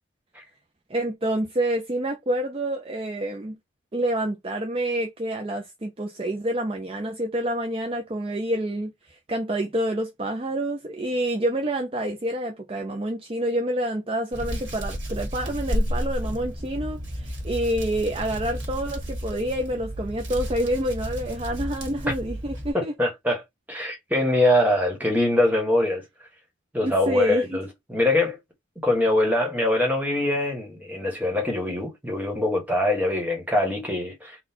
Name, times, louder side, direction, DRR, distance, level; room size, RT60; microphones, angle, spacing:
voice 1, 0.9-3.6 3.9-22.9 26.8-27.6, right 1 dB, 30° right, 0.5 m, -28 dB
Hands, 14.3-22.7, equal, 75° right, 1.5 m, -31 dB
voice 2, 22.7-23.4 23.7-26.0 26.7-28.4 28.8-34.4, left 1 dB, 10° right, 1.3 m, -23 dB
3.9 x 2.3 x 4.3 m
head